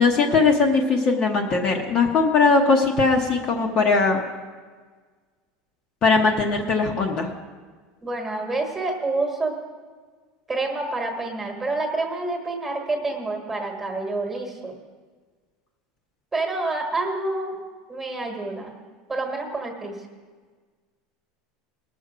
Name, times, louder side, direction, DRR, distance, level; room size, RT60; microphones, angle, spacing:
voice 1, 0.0-4.2 6.0-7.3, left 4 dB, 30° left, 1 dB, 0.8 m, -20 dB
voice 2, 8.0-9.5 10.5-14.7 16.3-17.6 17.9-18.7 19.1-20.0, right 2 dB, 10° right, 2 dB, 1.4 m, -28 dB
19.5 x 6.7 x 5.0 m, 1.5 s
supercardioid pair, 170°, 2 cm